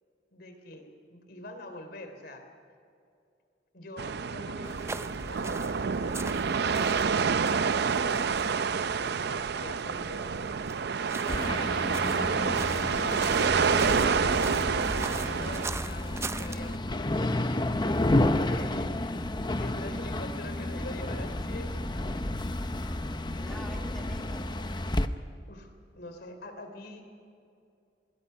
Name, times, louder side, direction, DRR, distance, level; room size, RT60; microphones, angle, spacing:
voice 1, 0.3-2.4 3.7-8.4 9.2-10.4 11.2-14.2 15.4-17.3 18.2-22.1 23.4-23.6 25.5-27.1, left 1 dB, 60° left, 6 dB, 3.5 m, -45 dB
sound 1, 4.0-15.7, right 5 dB, 65° right, 0.6 m, -28 dB
sound 2, 4.6-16.8, right 3 dB, 15° right, 0.5 m, -42 dB
sound 3, 11.3-25.1, left 1 dB, 25° left, 0.8 m, -31 dB
voice 2, 23.4-24.5, equal, 5° left, 1 dB, 1.7 m, -46 dB
26.5 x 21.0 x 5.8 m, 2.5 s
head